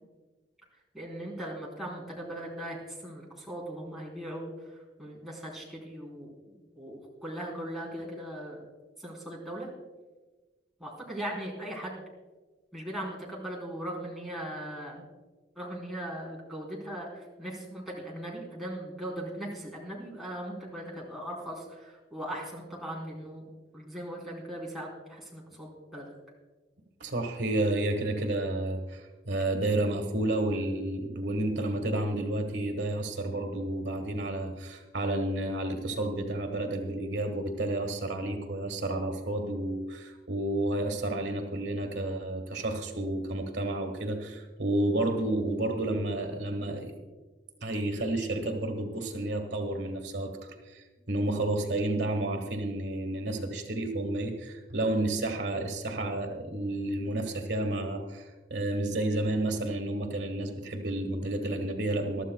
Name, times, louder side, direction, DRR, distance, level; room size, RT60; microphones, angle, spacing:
voice 1, 0.9-4.5 5.0-8.6 9.0-9.7 10.8-12.0 12.7-15.1 15.6-23.5 23.7-26.1, right 1 dB, ahead, -5 dB, 3.6 m, -39 dB
voice 2, 27.0-46.9 47.6-62.2, right 1 dB, 80° right, 5 dB, 1.5 m, -31 dB
21.5 x 13.0 x 2.3 m, 1.3 s
head